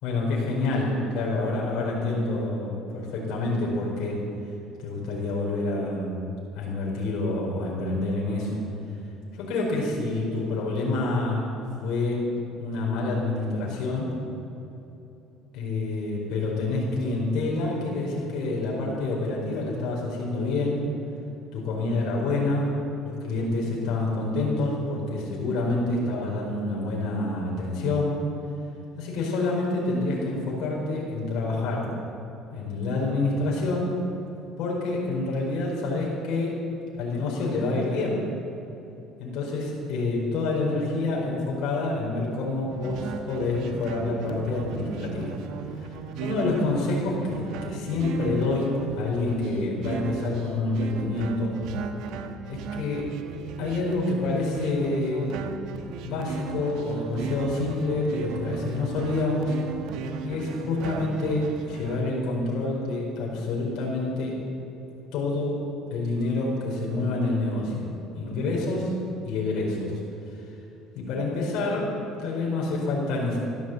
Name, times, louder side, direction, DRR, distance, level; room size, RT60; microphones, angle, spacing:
voice 1, 0.0-4.2 4.8-6.1 6.5-8.6 9.4-11.5 11.8-12.3 12.6-14.2 15.5-20.9 21.5-28.3 29.0-31.9 32.5-34.0 34.6-36.5 36.9-38.2 39.2-45.3 46.2-51.6 52.5-53.1 53.6-55.3 56.0-59.7 60.2-64.4 65.1-65.6 65.9-67.9 68.1-68.9 69.2-69.9 70.9-71.9 72.2-73.4, left 2 dB, 70° left, -3 dB, 4.6 m, -27 dB
sound 1, 42.7-62.0, right 6 dB, 70° right, 1.3 m, -36 dB
14.5 x 12.5 x 8.0 m, 3.0 s
cardioid pair, 120°, 0 cm